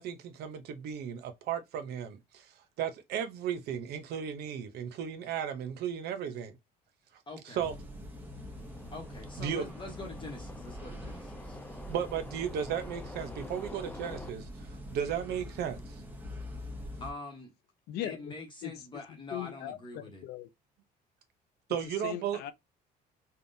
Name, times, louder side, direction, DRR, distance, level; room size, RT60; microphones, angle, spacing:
voice 1, 0.0-6.5 7.5-7.7 9.4-9.6 11.9-16.0 21.7-22.4, right 8 dB, 70° right, 0.7 m, -35 dB
voice 2, 7.3-7.6 8.9-11.6 17.0-17.5 18.0-20.2, left 2 dB, 30° left, 0.9 m, -44 dB
sound 1, 7.6-17.1, left 1 dB, 10° right, 0.9 m, -44 dB
sound 2, 8.2-14.3, left 2 dB, 10° left, 0.4 m, -48 dB
voice 3, 17.9-18.3 18.6-20.5 21.8-22.5, left 12 dB, 75° left, 0.4 m, -40 dB
3.5 x 2.2 x 2.6 m
cardioid pair, 110°, 17 cm